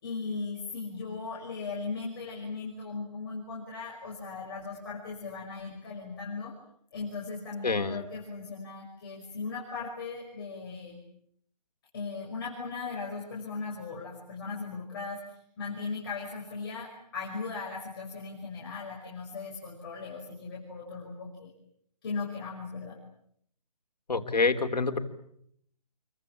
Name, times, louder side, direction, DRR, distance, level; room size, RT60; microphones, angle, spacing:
voice 1, 0.0-6.5 6.9-11.0 11.9-21.5 22.0-23.0, left 4 dB, 35° left, -2 dB, 5.7 m, -38 dB
voice 2, 7.6-8.0 24.1-25.0, left 4 dB, 80° left, 7 dB, 3.2 m, -27 dB
28.0 x 24.0 x 8.5 m, 0.70 s
hypercardioid pair, 165°, 21 cm